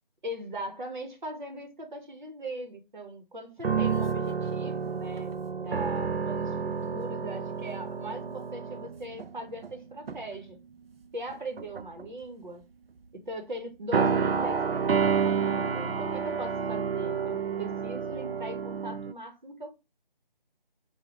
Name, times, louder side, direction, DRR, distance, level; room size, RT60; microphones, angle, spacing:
voice 1, 0.2-10.6 11.1-12.7 13.1-19.7, right 1 dB, 55° right, 1.1 m, -40 dB
sound 1, 3.6-9.7 10.1-10.4 11.3-12.1 13.9-19.1, right 6 dB, 80° right, 0.5 m, -29 dB
3.8 x 2.4 x 3.0 m
figure-of-eight pair, 165°, 29 cm